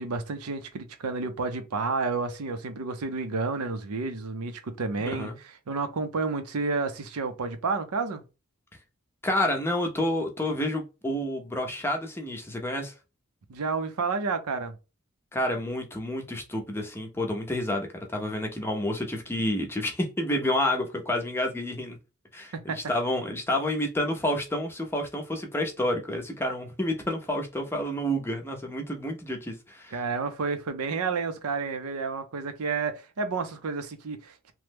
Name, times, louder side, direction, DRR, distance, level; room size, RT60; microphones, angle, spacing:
voice 1, 0.0-5.3 5.7-8.2 13.5-14.7 22.5-22.8 29.9-34.5, right 4 dB, 85° right, 0.6 m, -30 dB
voice 2, 5.0-5.4 9.2-12.9 15.3-22.0 22.3-29.9, left 1 dB, 10° left, 0.5 m, -29 dB
3.0 x 2.1 x 3.3 m
head